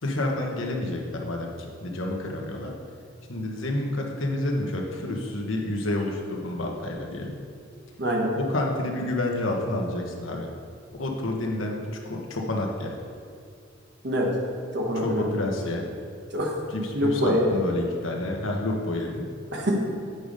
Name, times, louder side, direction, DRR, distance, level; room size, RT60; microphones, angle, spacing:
voice 1, 0.0-2.7 3.3-7.3 8.4-10.5 11.0-12.9 14.9-15.9 16.7-19.2, left 1 dB, 80° left, 0 dB, 1.1 m, -29 dB
voice 2, 8.0-8.3 14.0-14.3 14.7-15.4 16.3-16.5 16.9-17.5 19.5-19.8, equal, 60° right, -1 dB, 1.3 m, -24 dB
8.1 x 5.0 x 5.3 m, 2.3 s
head